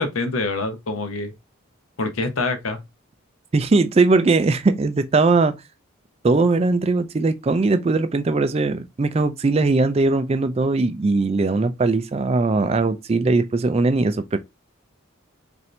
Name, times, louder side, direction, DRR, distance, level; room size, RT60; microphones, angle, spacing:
voice 1, 0.0-1.3 2.0-2.8, left 3 dB, 75° left, 0.9 m, -25 dB
voice 2, 3.5-5.5 6.2-14.4, right 3 dB, 30° right, 0.3 m, -20 dB
4.2 x 2.7 x 3.1 m
head